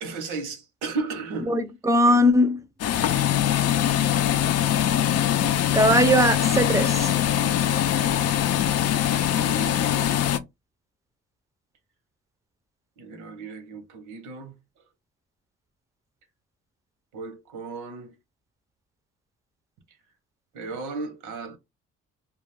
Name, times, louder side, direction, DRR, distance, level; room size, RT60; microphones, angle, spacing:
voice 1, 0.0-1.6 2.0-2.3 9.3-10.2 13.0-14.5 17.1-18.1 20.5-21.6, right 4 dB, 90° right, 0.9 m, -35 dB
voice 2, 1.5-2.6 5.7-7.1, equal, 10° right, 0.5 m, -20 dB
sound 1, 2.8-10.4, left 11 dB, 55° left, 0.4 m, -22 dB
2.3 x 2.3 x 3.2 m
cardioid pair, 90°, 30 cm